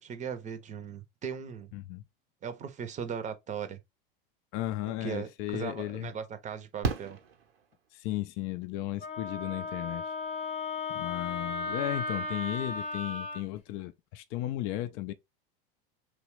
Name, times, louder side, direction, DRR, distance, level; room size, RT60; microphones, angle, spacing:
voice 1, 0.0-1.7 2.4-3.8 5.0-7.2, right 7 dB, 25° right, 0.6 m, -38 dB
voice 2, 1.7-2.0 4.5-6.1 7.9-10.2 10.9-15.1, left 15 dB, 45° left, 0.4 m, -35 dB
Fireworks, 5.1-5.2 6.8-8.1 9.9-10.0 10.2-10.3, right 4 dB, 90° right, 0.9 m, -34 dB
Wind instrument woodwind instrument, 9.0-13.4, left 3 dB, 20° left, 0.8 m, -35 dB
3.0 x 2.3 x 3.0 m
hypercardioid pair, 95°, 29 cm